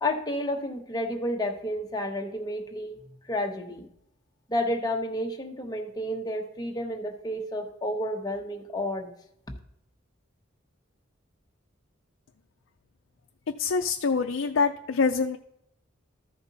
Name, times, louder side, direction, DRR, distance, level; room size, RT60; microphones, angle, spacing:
voice 1, 0.0-3.0 3.3-3.9 4.5-9.1, left 1 dB, 20° left, 2 dB, 1.0 m, -31 dB
voice 2, 13.6-15.4, left 5 dB, 75° left, 4 dB, 0.5 m, -25 dB
13.5 x 5.2 x 4.0 m, 0.76 s
head